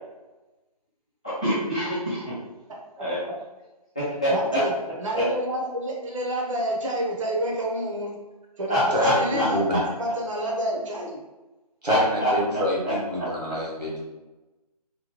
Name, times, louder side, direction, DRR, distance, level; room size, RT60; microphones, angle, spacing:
voice 1, 1.2-2.4 3.0-3.2 3.9-4.6 5.1-5.2 8.7-9.5 9.7-9.8 11.9-13.3, equal, 10° left, -13 dB, 0.3 m, -26 dB
voice 2, 4.3-4.7 5.0-8.1 8.6-11.2, equal, 50° right, -1 dB, 0.7 m, -28 dB
voice 3, 8.9-9.8 11.8-14.0, equal, 85° right, -4 dB, 1.3 m, -26 dB
2.9 x 2.2 x 2.9 m, 1.1 s
figure-of-eight pair, 145°, 21 cm